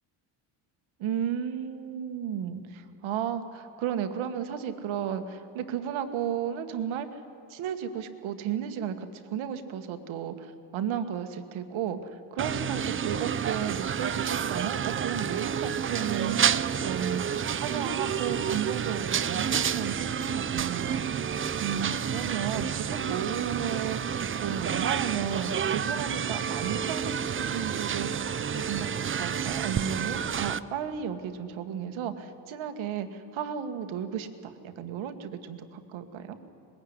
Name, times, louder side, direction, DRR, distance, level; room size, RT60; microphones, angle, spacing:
voice 1, 1.0-7.2 7.5-21.2 21.6-36.4, right 8 dB, 75° right, 8 dB, 1.6 m, -34 dB
sound 1, 12.4-30.6, right 7 dB, 25° right, 0.5 m, -30 dB
20.0 x 16.5 x 9.6 m, 2.5 s
supercardioid pair, 80°, 48 cm